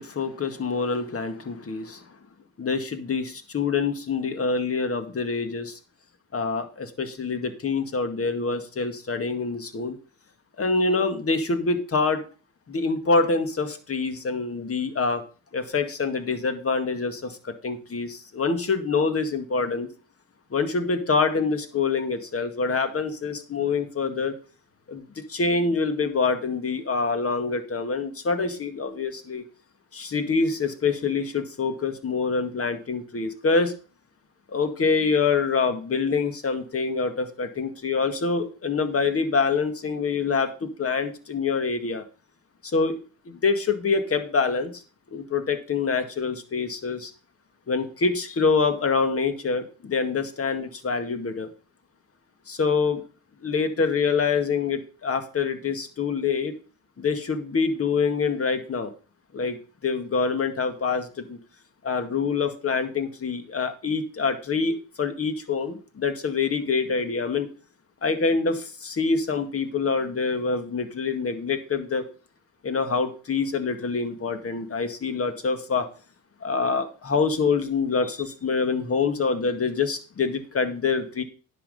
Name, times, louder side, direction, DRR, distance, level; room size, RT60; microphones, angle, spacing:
voice 1, 0.0-2.0 2.6-5.8 6.3-10.0 10.6-12.2 12.7-15.2 15.5-19.9 20.5-24.3 24.9-29.4 29.9-33.7 34.5-42.0 42.6-43.0 43.3-44.8 45.1-47.1 47.7-51.5 52.5-53.0 53.4-56.5 57.0-58.9 59.3-61.4 61.8-67.5 68.0-72.0 72.6-75.9 76.4-81.2, left 4 dB, 40° left, 8 dB, 2.0 m, -26 dB
10.0 x 6.1 x 5.4 m, 0.36 s
supercardioid pair, 70°, 34 cm